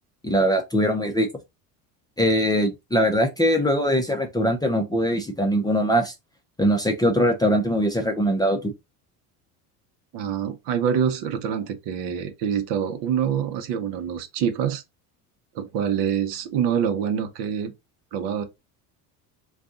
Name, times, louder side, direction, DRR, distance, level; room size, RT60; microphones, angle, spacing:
voice 1, 0.2-1.3 2.2-6.1 6.6-8.7, equal, 10° left, 0.6 m, -21 dB
voice 2, 10.1-14.8 15.5-17.7 18.1-18.4, right 8 dB, 60° right, 0.9 m, -25 dB
2.6 x 2.4 x 3.7 m
supercardioid pair, 90°, 47 cm